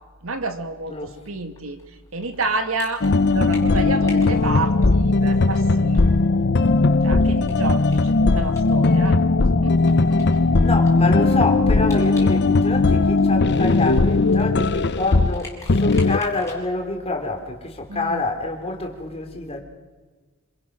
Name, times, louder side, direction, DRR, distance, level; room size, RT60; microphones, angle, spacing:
voice 1, 0.2-1.8 2.1-6.1 7.0-9.3 9.6-9.8 10.1-10.3 17.9-18.2, right 3 dB, 70° right, 7 dB, 2.0 m, -29 dB
sound 1, 1.6-5.3 5.6-5.7 5.9-6.0 6.4-9.1 9.4-9.5 9.9-12.4 12.6-16.6, left 3 dB, 15° left, 6.7 m, -44 dB
sound 2, 3.0-15.4 15.7-16.2, left 3 dB, 55° left, 0.7 m, -18 dB
voice 2, 10.6-19.6, left 2 dB, 30° left, 3 dB, 3.5 m, -27 dB
27.0 x 26.5 x 6.2 m, 1.4 s
head